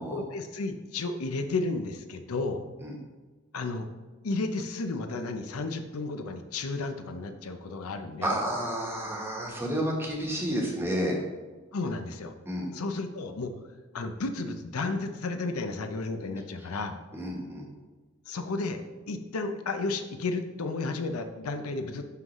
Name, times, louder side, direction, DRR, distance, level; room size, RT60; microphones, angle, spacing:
voice 1, 0.1-2.6 3.5-3.9 4.2-8.4 11.7-12.3 12.7-13.5 13.9-17.0 18.3-18.8 19.1-22.0, left 3 dB, 80° left, 7 dB, 0.6 m, -32 dB
voice 2, 8.2-11.2 12.5-12.7 17.1-17.7, equal, 10° right, -1 dB, 1.2 m, -30 dB
11.5 x 3.8 x 3.1 m, 1.3 s
head